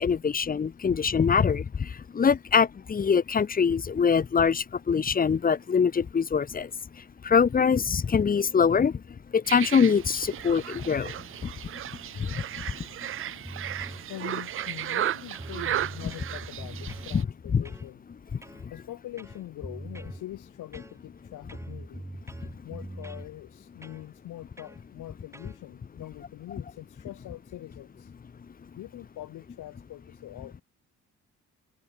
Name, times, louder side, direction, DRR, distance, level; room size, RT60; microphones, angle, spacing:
voice 1, 0.0-1.6 2.1-6.7 7.2-8.9 9.3-11.1 17.1-17.2 17.5-17.6, left 6 dB, 30° left, 0.8 m, -23 dB
sound 1, 9.4-17.2, right 12 dB, 45° right, 0.4 m, -35 dB
sound 2, 13.4-14.0 14.6-15.1 15.3-17.1 17.7-17.9 18.4-18.7 19.2-20.2 20.7-21.2 21.5-23.3 23.8-24.0 24.6-24.8 25.3-25.6, right 1 dB, 10° right, 4.5 m, -42 dB
voice 2, 14.1-18.0 18.7-22.1 22.6-28.1 28.7-30.6, left 14 dB, 85° left, 3.1 m, -43 dB
cardioid pair, 90°, 30 cm